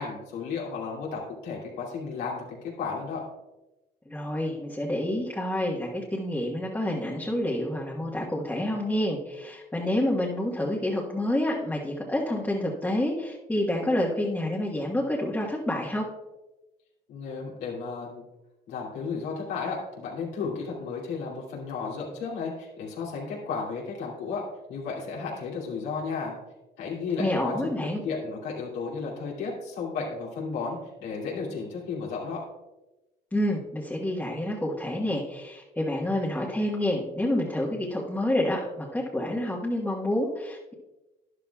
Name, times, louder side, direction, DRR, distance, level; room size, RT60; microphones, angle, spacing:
voice 1, 0.0-3.2 17.1-18.3 18.7-24.4 24.7-26.3 26.8-27.8 28.0-32.4, left 4 dB, 90° left, -4 dB, 2.7 m, -33 dB
voice 2, 4.1-16.1 27.2-28.0 33.3-40.7, left 1 dB, 10° left, -4 dB, 1.4 m, -28 dB
12.5 x 10.5 x 2.4 m, 1.1 s
cardioid pair, 110°, 17 cm